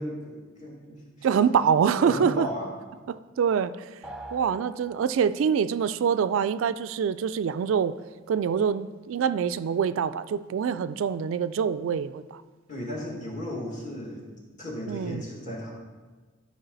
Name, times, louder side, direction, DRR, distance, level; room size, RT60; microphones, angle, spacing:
voice 1, 0.0-1.3 2.0-2.7 12.7-14.2 14.6-15.7, left 1 dB, 35° left, -3 dB, 2.1 m, -35 dB
voice 2, 1.2-2.5 3.1-3.7 4.3-7.9 8.3-12.4 14.9-15.2, right 7 dB, 70° right, 13 dB, 0.3 m, -25 dB
sound 1, 4.0-5.5, right 1 dB, ahead, 0.5 m, -43 dB
12.5 x 4.9 x 4.0 m, 1.3 s
head